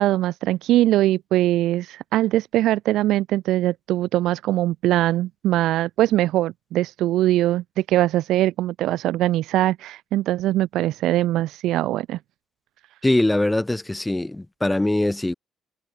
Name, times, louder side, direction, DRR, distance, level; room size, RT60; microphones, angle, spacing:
voice 1, 0.0-12.2, right 15 dB, 80° right, 0.5 m, -21 dB
voice 2, 13.0-15.3, left 1 dB, 10° left, 4.4 m, -22 dB
cardioid pair, 85°, 0 cm